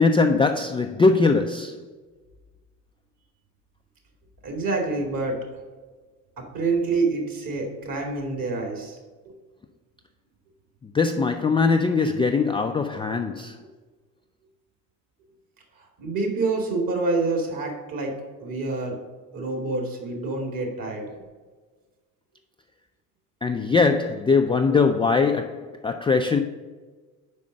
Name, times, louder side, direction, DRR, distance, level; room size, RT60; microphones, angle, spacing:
voice 1, 0.0-1.8 10.9-13.6 23.4-26.4, left 4 dB, 15° left, 0.3 m, -21 dB
voice 2, 4.4-5.4 6.4-9.0 9.3-9.4 16.0-19.0 19.3-21.2, right 3 dB, 50° right, 2.4 m, -27 dB
5.3 x 5.0 x 6.4 m
hypercardioid pair, 65°, 44 cm